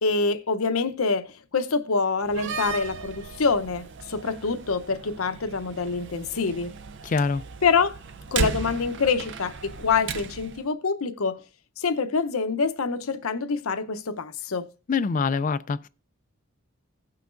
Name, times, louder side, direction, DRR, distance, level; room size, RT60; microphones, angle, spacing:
voice 1, 0.0-6.7 7.6-8.0 8.3-11.4 11.8-14.7, left 4 dB, 75° left, 0.8 m, -26 dB
Slam, 2.2-10.6, right 4 dB, 55° right, 0.6 m, -35 dB
voice 2, 7.0-7.4 14.9-15.9, left 4 dB, 35° left, 0.4 m, -25 dB
17.0 x 5.8 x 2.5 m
head